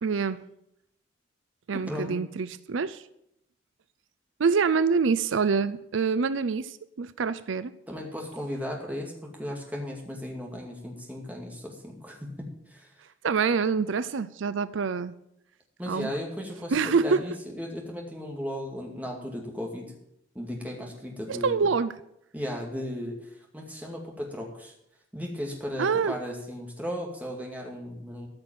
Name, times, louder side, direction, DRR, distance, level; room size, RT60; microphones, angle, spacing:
voice 1, 0.0-0.4 1.7-3.0 4.4-7.7 13.2-15.1 15.9-16.1 16.7-17.2 21.3-21.9 25.8-26.2, right 5 dB, 80° right, 15 dB, 0.5 m, -26 dB
voice 2, 1.7-2.2 7.9-12.9 15.8-19.9 20.3-21.7 22.3-24.7 25.1-28.3, equal, 10° right, 0 dB, 2.3 m, -36 dB
14.0 x 6.0 x 9.0 m, 0.80 s
head